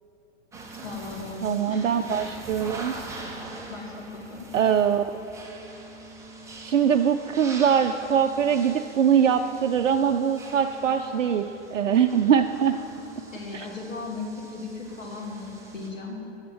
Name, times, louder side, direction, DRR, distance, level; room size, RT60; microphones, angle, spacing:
sound 1, 0.5-15.9, right 2 dB, 10° right, 1.1 m, -42 dB
voice 1, 0.8-2.1 3.7-4.5 13.3-16.2, left 4 dB, 90° left, -3 dB, 3.1 m, -37 dB
voice 2, 1.4-2.9 4.5-5.0 6.6-12.8 13.5-13.7, right 8 dB, 75° right, 6 dB, 0.6 m, -22 dB
10.0 x 7.3 x 7.7 m, 2.9 s
figure-of-eight pair, 120°, 38 cm